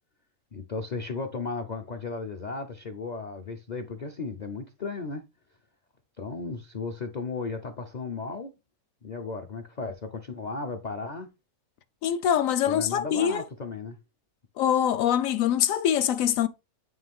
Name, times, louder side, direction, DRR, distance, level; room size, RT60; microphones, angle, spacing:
voice 1, 0.5-5.2 6.2-8.5 9.0-11.3 12.7-14.0, left 4 dB, 50° left, 0.5 m, -35 dB
voice 2, 12.0-13.4 14.6-16.5, left 9 dB, 70° left, 0.9 m, -24 dB
9.3 x 3.1 x 3.5 m
omnidirectional pair, 1.6 m